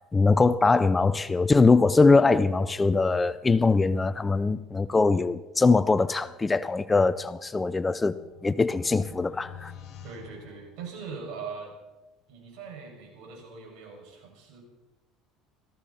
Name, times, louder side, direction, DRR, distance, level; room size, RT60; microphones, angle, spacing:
voice 1, 0.1-8.1 8.4-9.7, left 3 dB, 15° left, 0.5 m, -22 dB
sound 1, 7.4-11.3, left 7 dB, 45° left, 4.0 m, -48 dB
voice 2, 10.0-11.8 12.3-14.6, right 5 dB, 70° right, 6.3 m, -41 dB
18.5 x 14.5 x 4.3 m
cardioid pair, 120°, 0 cm